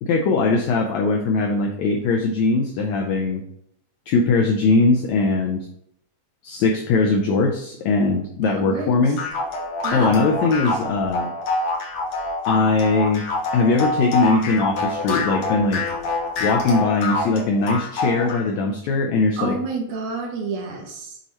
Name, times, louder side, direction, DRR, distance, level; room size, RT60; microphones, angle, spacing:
voice 1, 0.0-3.4 4.1-5.7 6.4-9.2 9.9-11.3 12.5-13.2 13.5-15.8 16.4-19.6, left 3 dB, 85° left, 2 dB, 1.6 m, -20 dB
voice 2, 8.5-8.9 9.8-10.2 19.4-21.2, right 4 dB, 70° right, 1 dB, 2.3 m, -29 dB
sound 1, 9.2-18.5, left 3 dB, 60° left, 2.3 m, -26 dB
8.0 x 3.0 x 4.2 m, 0.73 s
omnidirectional pair, 3.8 m